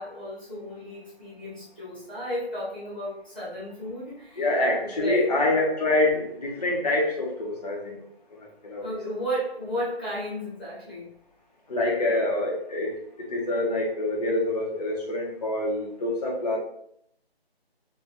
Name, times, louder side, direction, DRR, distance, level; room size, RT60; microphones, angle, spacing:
voice 1, 0.0-4.5 4.8-5.3 8.8-11.1, equal, 10° left, -10 dB, 0.5 m, -33 dB
voice 2, 4.4-8.0 8.4-8.9 11.7-16.6, left 2 dB, 40° left, -2 dB, 1.0 m, -26 dB
5.3 x 2.0 x 2.6 m, 0.70 s
figure-of-eight pair, 155°, 31 cm